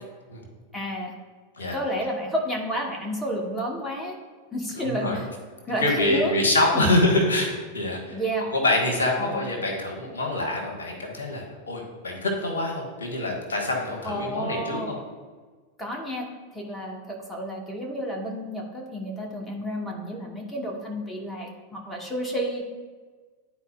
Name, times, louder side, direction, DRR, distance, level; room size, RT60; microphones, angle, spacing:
voice 1, 0.7-1.1 1.7-4.1 4.5-5.3 5.7-6.4 6.7-6.9 8.1-8.5 9.2-9.4 14.0-14.9 15.8-22.6, equal, 10° left, -1 dB, 1.1 m, -31 dB
voice 2, 4.8-5.2 5.8-8.2 8.5-14.9, left 2 dB, 70° left, 0 dB, 1.5 m, -25 dB
11.0 x 4.2 x 2.4 m, 1.4 s
figure-of-eight pair, 90°, 0 cm